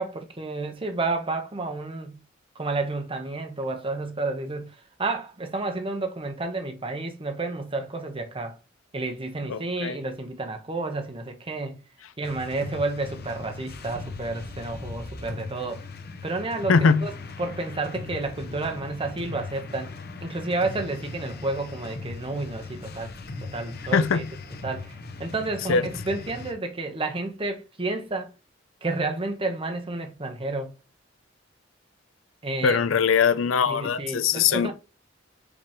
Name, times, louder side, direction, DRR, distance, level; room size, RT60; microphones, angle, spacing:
voice 1, 0.0-2.2 2.5-4.7 5.0-8.6 8.9-11.8 12.2-15.8 16.2-17.1 17.4-19.9 20.2-23.1 23.4-24.2 24.6-24.9 25.2-28.3 28.8-30.7 32.4-32.8 33.7-34.7, right 2 dB, 30° right, 0.9 m, -30 dB
voice 2, 9.5-9.9 16.7-17.1 23.9-24.3 25.7-25.9 32.6-34.7, left 6 dB, 85° left, 0.5 m, -21 dB
sound 1, 12.2-26.5, left 3 dB, 55° left, 0.8 m, -39 dB
5.1 x 3.0 x 3.4 m
head